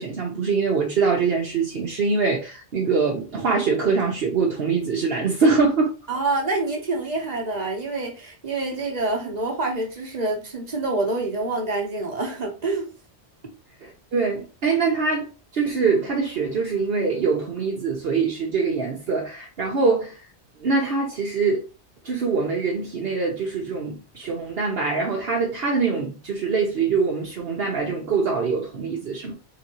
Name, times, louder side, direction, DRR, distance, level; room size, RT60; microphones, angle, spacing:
voice 1, 0.0-5.9 13.8-20.1 20.6-21.6 22.0-29.3, right 4 dB, 60° right, 1.0 m, -23 dB
voice 2, 6.1-12.9, right 2 dB, 40° right, 1.3 m, -27 dB
4.1 x 3.8 x 3.0 m
omnidirectional pair, 1.2 m